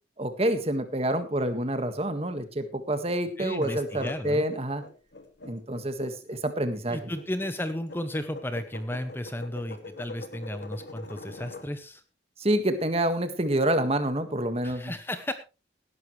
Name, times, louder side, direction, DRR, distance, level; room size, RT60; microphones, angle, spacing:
voice 1, 0.2-4.8 5.4-7.0 12.4-14.9, right 1 dB, 35° right, 9 dB, 1.7 m, -27 dB
voice 2, 3.4-4.4 6.9-12.0 14.6-15.3, left 1 dB, 10° left, 10 dB, 0.8 m, -34 dB
sound 1, 3.5-11.7, left 2 dB, 70° left, 2.3 m, -43 dB
17.5 x 11.0 x 3.2 m, 0.29 s
head